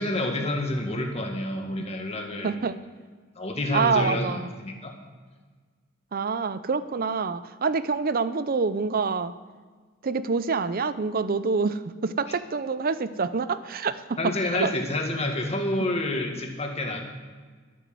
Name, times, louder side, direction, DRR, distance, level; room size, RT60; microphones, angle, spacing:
voice 1, 0.0-2.7 3.4-4.9 12.3-12.4 14.2-17.0, left 1 dB, 30° left, 2 dB, 1.9 m, -28 dB
voice 2, 2.4-2.8 3.7-4.5 6.1-9.3 10.0-14.7, right 4 dB, 45° right, 14 dB, 0.6 m, -26 dB
12.5 x 8.7 x 7.7 m, 1.5 s
head